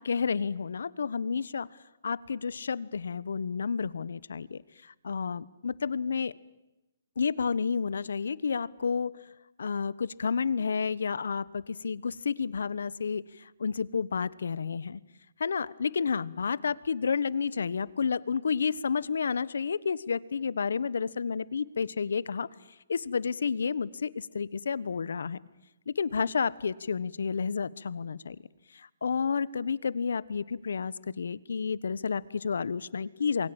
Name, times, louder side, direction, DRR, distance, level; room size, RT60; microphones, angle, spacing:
voice 1, 0.0-1.7 2.0-6.3 7.2-9.1 9.6-15.0 15.4-22.5 22.9-25.4 25.9-28.4 28.7-33.5, left 5 dB, 75° left, 20 dB, 1.2 m, -30 dB
28.0 x 22.0 x 8.9 m, 0.97 s
hypercardioid pair, 155°, 0 cm